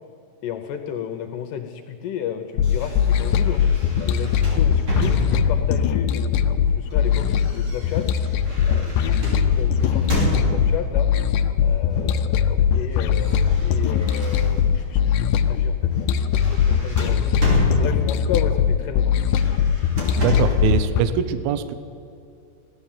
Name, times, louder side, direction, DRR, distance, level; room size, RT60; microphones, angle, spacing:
voice 1, 0.4-3.6 4.0-8.0 8.6-11.1 11.6-15.8 16.8-19.1, left 8 dB, 75° left, 6 dB, 2.1 m, -33 dB
sound 1, 2.6-21.0, left 8 dB, 90° left, 1.8 m, -20 dB
sound 2, 2.6-5.7 6.7-10.9 11.9-12.3 12.6-14.9 15.3-15.5 15.9-18.3 19.2-20.7, equal, 35° right, 3.5 m, -30 dB
voice 2, 20.2-21.7, right 8 dB, 80° right, 12 dB, 2.5 m, -23 dB
16.0 x 12.5 x 7.3 m, 2.5 s
omnidirectional pair, 4.4 m